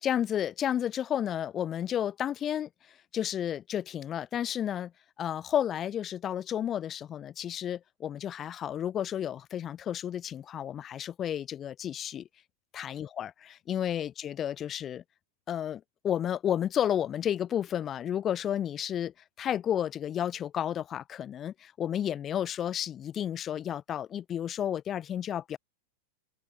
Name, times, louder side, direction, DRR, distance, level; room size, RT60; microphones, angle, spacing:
voice 1, 0.0-2.7 3.1-4.9 5.2-12.3 12.7-15.0 15.5-25.6, left 10 dB, 25° left, 0.7 m, -32 dB
open air
figure-of-eight pair, 90°, 0 cm